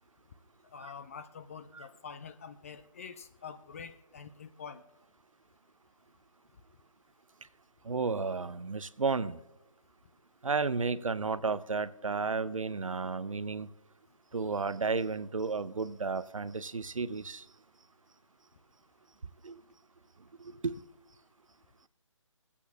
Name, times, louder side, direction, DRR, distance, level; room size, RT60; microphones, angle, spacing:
voice 1, 0.7-4.9, left 6 dB, 25° left, 11 dB, 0.4 m, -46 dB
voice 2, 7.9-9.4 10.4-13.7 14.3-17.4 19.4-19.6 20.6-20.7, right 4 dB, 90° right, 15 dB, 0.6 m, -32 dB
22.5 x 8.3 x 2.7 m, 1.0 s
figure-of-eight pair, 150°, 17 cm